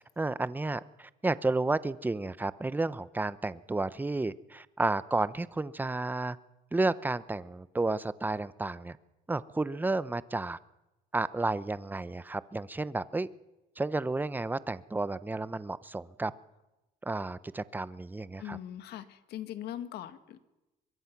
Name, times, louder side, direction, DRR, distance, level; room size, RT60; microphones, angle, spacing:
voice 1, 0.2-6.4 6.7-9.0 9.3-10.6 11.1-13.3 13.8-16.3 17.0-18.6, right 2 dB, 10° right, 16 dB, 0.8 m, -32 dB
voice 2, 18.4-20.4, left 11 dB, 75° left, 11 dB, 1.8 m, -41 dB
24.0 x 22.0 x 6.0 m, 0.99 s
cardioid pair, 110°, 17 cm